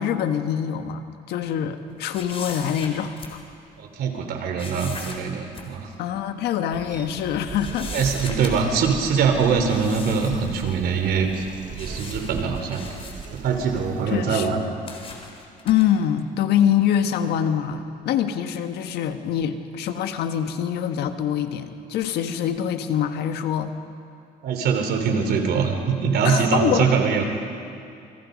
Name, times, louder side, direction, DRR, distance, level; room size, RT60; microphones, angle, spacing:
voice 1, 0.0-3.4 6.0-8.1 14.1-14.5 15.6-23.7 26.2-26.9, left 9 dB, 80° left, 7 dB, 1.6 m, -24 dB
sound 1, 2.1-3.7 4.6-5.7 6.1-6.2 6.9-7.3 7.6-8.9 9.6-10.9 11.3-11.5 11.8-14.0 14.5-15.9, left 4 dB, 35° left, 4.1 m, -39 dB
voice 2, 3.8-5.9 7.9-11.5 11.7-12.8 13.3-14.7 24.4-27.2, right 5 dB, 70° right, 5 dB, 3.7 m, -23 dB
sound 2, 6.7-14.2, right 6 dB, 50° right, 2.0 m, -38 dB
28.5 x 24.5 x 5.3 m, 2.5 s
cardioid pair, 110°, 17 cm